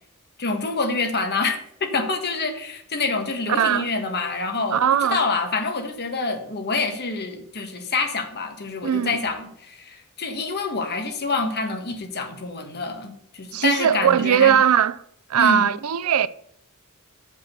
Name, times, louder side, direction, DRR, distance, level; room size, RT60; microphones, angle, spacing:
voice 1, 0.4-14.6 15.4-15.7, left 3 dB, 50° left, 1.5 m, -27 dB
voice 2, 3.5-3.9 4.7-5.2 8.8-9.2 13.5-15.0 15.3-16.3, right 8 dB, 80° right, 0.5 m, -19 dB
7.4 x 5.3 x 6.8 m
head